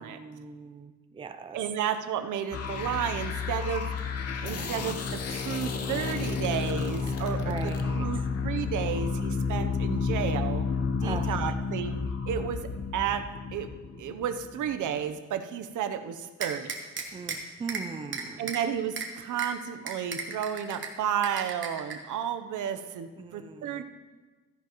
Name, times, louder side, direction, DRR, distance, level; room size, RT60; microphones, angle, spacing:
voice 1, 0.0-1.6 4.5-5.0 7.4-8.1 11.0-11.5 17.1-18.5 23.2-23.8, right 5 dB, 15° right, 8 dB, 0.4 m, -40 dB
voice 2, 1.5-3.9 4.4-10.7 11.0-16.7 18.4-23.8, right 8 dB, 75° right, 9 dB, 0.8 m, -32 dB
sound 1, 2.5-14.8, left 5 dB, 55° left, 0.8 m, -31 dB
sound 2, 16.4-17.4 17.7-17.8 18.1-18.6 19.0-19.1 19.4-19.5 19.9-20.9 21.2-21.9, right 6 dB, 40° right, 1.2 m, -34 dB
14.0 x 10.5 x 3.0 m, 1.3 s
cardioid pair, 155°, 30 cm